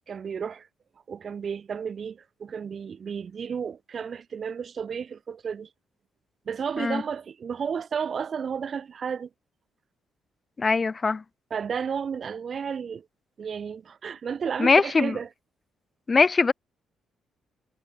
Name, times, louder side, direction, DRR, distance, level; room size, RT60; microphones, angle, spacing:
voice 1, 0.1-0.7 1.1-5.7 6.5-9.3 11.5-13.1 13.4-15.3, right 6 dB, 50° right, 1.9 m, -32 dB
voice 2, 10.6-11.2 14.6-15.2 16.1-16.5, left 4 dB, 30° left, 0.5 m, -21 dB
cardioid pair, 90°, 0 cm